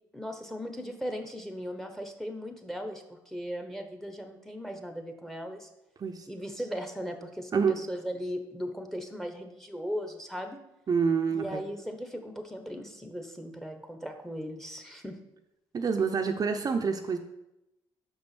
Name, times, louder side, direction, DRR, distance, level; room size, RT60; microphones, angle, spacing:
voice 1, 0.1-5.7 6.3-10.6 11.3-15.2, equal, 5° left, 6 dB, 1.2 m, -38 dB
voice 2, 10.9-11.6 15.7-17.2, right 5 dB, 45° right, 5 dB, 0.7 m, -27 dB
6.2 x 5.2 x 6.1 m, 0.89 s
cardioid pair, 75°, 9 cm